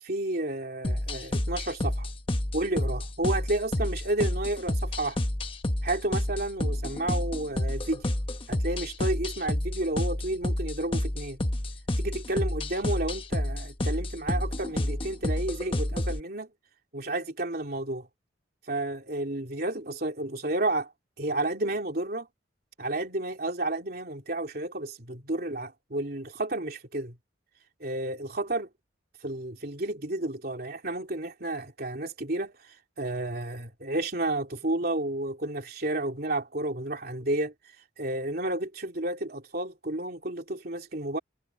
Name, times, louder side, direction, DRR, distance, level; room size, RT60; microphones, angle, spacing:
voice 1, 0.0-2.1 2.5-5.2 5.8-8.1 8.5-11.4 12.0-16.5 16.9-18.1 18.7-20.9 21.2-22.3 22.8-27.2 27.8-28.7 29.2-37.5 38.0-41.2, right 2 dB, 50° right, 3.2 m, -31 dB
sound 1, 0.8-16.2, left 1 dB, 30° left, 1.2 m, -29 dB
head